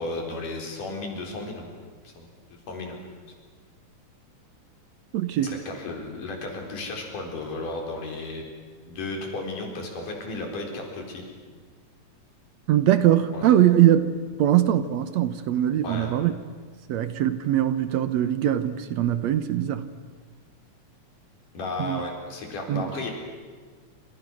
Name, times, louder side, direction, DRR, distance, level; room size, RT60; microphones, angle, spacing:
voice 1, 0.0-1.7 2.0-2.3 2.7-3.0 5.4-8.5 8.9-11.2 13.3-13.5 15.8-16.1 21.5-23.1, left 2 dB, 85° left, 1 dB, 5.7 m, -34 dB
voice 2, 5.1-5.6 12.7-16.3 16.9-19.9 21.8-22.0 22.7-22.9, right 11 dB, 70° right, 11 dB, 2.0 m, -22 dB
28.0 x 26.5 x 6.3 m, 1.5 s
omnidirectional pair, 3.6 m